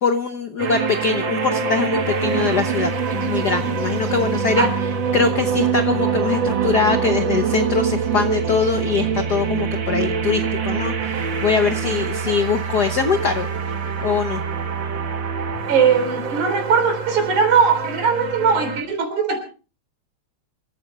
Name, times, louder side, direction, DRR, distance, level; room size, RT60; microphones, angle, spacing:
voice 1, 0.0-4.6 5.1-13.5 14.0-14.4, left 5 dB, 85° left, 9 dB, 0.8 m, -22 dB
sound 1, 0.6-18.8, right 6 dB, 45° right, 2.0 m, -24 dB
voice 2, 15.7-19.4, right 6 dB, 90° right, 7 dB, 4.9 m, -19 dB
26.5 x 14.0 x 3.2 m, 0.34 s
omnidirectional pair, 3.3 m